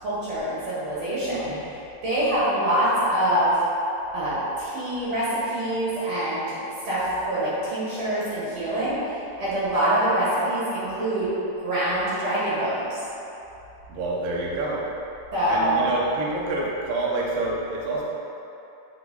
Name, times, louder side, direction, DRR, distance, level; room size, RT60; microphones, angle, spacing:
voice 1, 0.0-1.5 2.0-3.5 4.1-6.6 6.8-9.0 9.4-11.3 11.6-12.9 15.3-15.9, right 1 dB, 65° right, -10 dB, 1.7 m, -25 dB
voice 2, 1.3-1.6 13.9-14.8 15.5-18.0, right 2 dB, 85° right, -4 dB, 2.0 m, -28 dB
11.0 x 3.7 x 4.0 m, 2.9 s
omnidirectional pair, 5.8 m